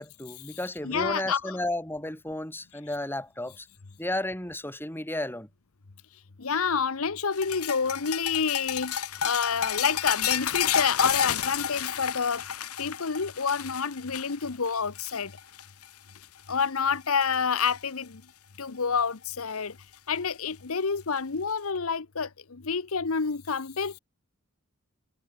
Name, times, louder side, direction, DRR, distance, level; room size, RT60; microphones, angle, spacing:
voice 1, 0.0-3.7 4.0-5.5, left 1 dB, 10° left, 6.4 m, -33 dB
voice 2, 0.8-1.6 6.4-12.4 12.8-15.3 16.5-18.2 18.6-19.8 20.1-24.0, left 6 dB, 70° left, 0.9 m, -28 dB
sound 1, 7.3-15.9 16.1-16.5 16.9-17.8 19.1-19.2 20.5-20.6, left 9 dB, 85° left, 1.4 m, -31 dB
head